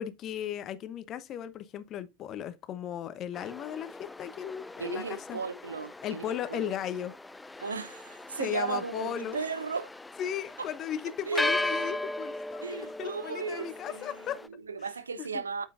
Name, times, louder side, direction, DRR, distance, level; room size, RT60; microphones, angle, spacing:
voice 1, 0.0-5.4 6.0-7.1 8.4-9.4 10.2-14.4 15.2-15.4, left 10 dB, 35° left, 0.9 m, -36 dB
sound 1, 3.3-14.5, left 2 dB, 10° left, 0.5 m, -38 dB
voice 2, 4.8-6.7 7.6-9.9 10.6-10.7 11.3-12.0 12.6-15.7, right 5 dB, 80° right, 0.7 m, -36 dB
8.6 x 7.5 x 2.5 m
figure-of-eight pair, 85°, 0 cm